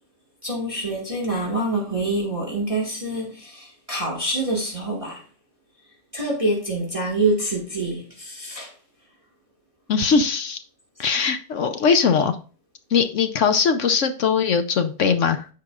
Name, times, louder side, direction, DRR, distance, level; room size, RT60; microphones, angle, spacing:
voice 1, 0.4-5.2 6.1-8.7, right 2 dB, 20° right, 1.7 m, -26 dB
voice 2, 9.9-10.6 11.0-12.4 12.9-15.5, left 6 dB, 60° left, 0.8 m, -20 dB
14.0 x 4.8 x 2.4 m
omnidirectional pair, 1.8 m